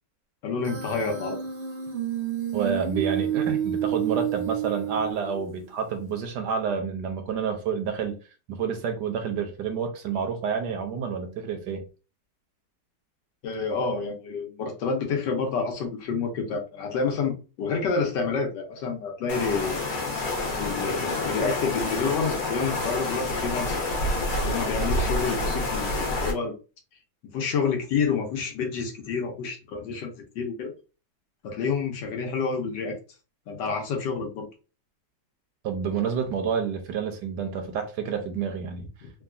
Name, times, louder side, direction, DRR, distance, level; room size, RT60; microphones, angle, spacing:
voice 1, 0.4-1.4 13.4-19.8 20.6-24.0 24.4-26.6 27.3-30.7 31.4-33.0 33.5-34.5 39.0-39.1, left 5 dB, 75° left, 1.4 m, -29 dB
Human voice, 0.6-5.6, right 10 dB, 55° right, 0.7 m, -29 dB
voice 2, 2.5-8.2 8.5-11.8 35.6-38.9, right 6 dB, 75° right, 1.1 m, -29 dB
sound 1, 19.3-26.3, left 2 dB, 55° left, 1.4 m, -28 dB
3.6 x 2.3 x 2.4 m
omnidirectional pair, 1.9 m